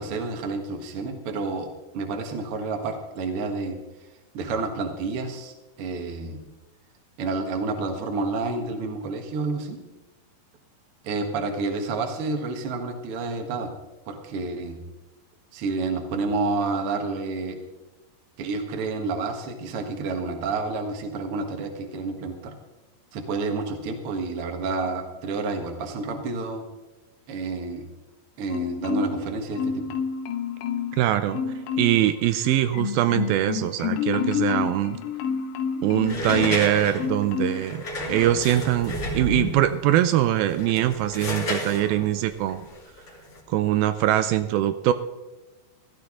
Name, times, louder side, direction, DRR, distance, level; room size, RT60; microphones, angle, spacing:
voice 1, 0.0-1.7 1.9-3.8 4.3-6.4 7.2-9.8 11.0-13.7 14.1-14.8 15.5-17.6 18.4-22.5 23.1-26.6 27.3-27.9 28.4-29.9, right 3 dB, 50° right, 5 dB, 1.8 m, -29 dB
Marimba xylophone, 28.5-29.3 29.6-31.0 31.3-32.1 32.4-36.6 37.0-37.7 38.1-38.3, left 7 dB, 80° left, 2.7 m, -29 dB
voice 2, 31.0-31.4 31.8-35.0 35.8-37.8 38.1-42.7 43.5-44.9, right 12 dB, 80° right, 11 dB, 2.4 m, -22 dB
sound 1, 36.0-39.7 40.4-43.4, left 1 dB, 35° left, 2.7 m, -31 dB
16.0 x 13.5 x 3.7 m, 1.1 s
omnidirectional pair, 4.4 m